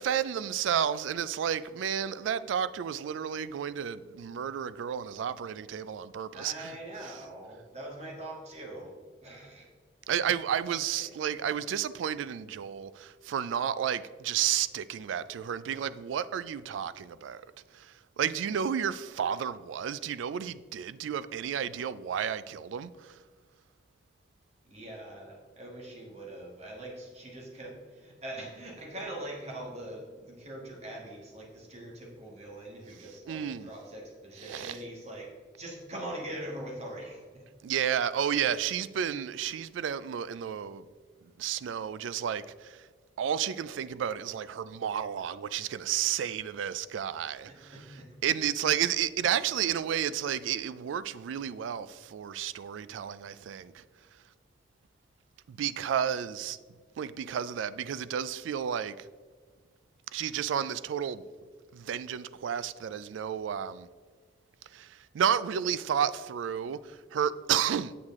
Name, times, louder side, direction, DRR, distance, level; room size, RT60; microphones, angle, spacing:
voice 1, 0.0-6.8 10.1-17.4 17.7-23.2 33.3-33.7 34.4-34.8 37.6-40.9 41.2-42.9 43.2-47.7 48.2-53.8 55.5-56.6 57.0-59.1 60.1-61.2 61.7-63.9 64.7-67.9, right 9 dB, 85° right, 0.3 m, -32 dB
voice 2, 6.3-8.9 9.2-9.7 10.9-11.0 24.6-35.3 35.6-37.4 47.5-48.1, right 1 dB, 35° right, 1.6 m, -42 dB
7.9 x 6.5 x 3.6 m
head